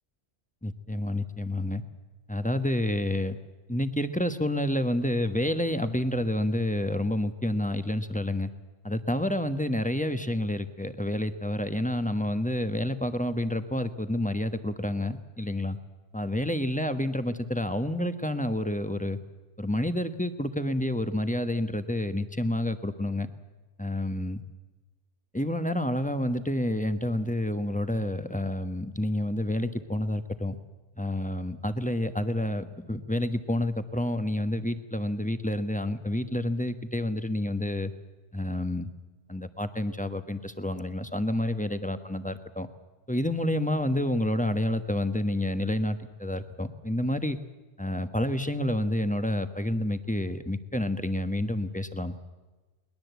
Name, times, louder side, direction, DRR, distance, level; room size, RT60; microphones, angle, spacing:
voice 1, 0.6-1.8 2.3-3.4 3.7-8.5 8.8-15.8 16.1-19.2 19.6-23.3 23.8-24.4 25.3-30.6 31.0-37.9 38.3-38.9 39.3-42.7 43.1-47.4 47.8-52.2, left 1 dB, 5° left, 9 dB, 1.0 m, -29 dB
21.5 x 20.5 x 8.2 m, 1.2 s
omnidirectional pair, 1.2 m